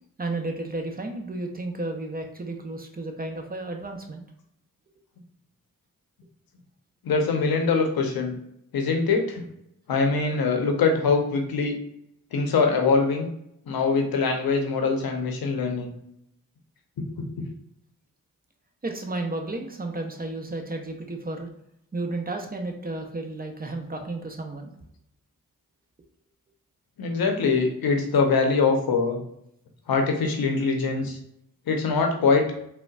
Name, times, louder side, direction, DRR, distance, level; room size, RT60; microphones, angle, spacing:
voice 1, 0.2-4.2 18.8-21.5 21.9-24.7, right 2 dB, 25° right, 4 dB, 0.6 m, -32 dB
voice 2, 7.0-8.3 8.7-9.4 9.9-11.8 12.3-13.3 13.7-15.9 27.0-29.2 29.9-31.2 31.7-32.4, left 4 dB, 75° left, 3 dB, 0.7 m, -23 dB
3.8 x 2.1 x 2.2 m, 0.77 s
cardioid pair, 45°, 36 cm